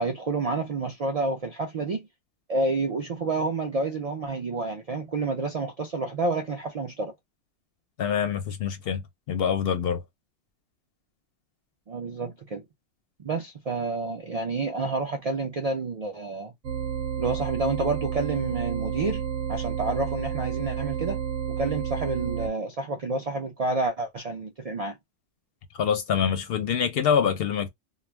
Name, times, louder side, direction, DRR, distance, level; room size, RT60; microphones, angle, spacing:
voice 1, 0.0-2.1 2.5-7.1 11.9-12.6 13.2-16.5 17.2-21.2 21.6-25.0, right 3 dB, 70° right, 0.3 m, -29 dB
voice 2, 8.0-9.0 9.3-10.0 25.8-27.7, left 7 dB, 65° left, 0.7 m, -25 dB
sound 1, 16.6-22.5, right 8 dB, 85° right, 0.9 m, -30 dB
2.3 x 2.1 x 3.1 m
omnidirectional pair, 1.3 m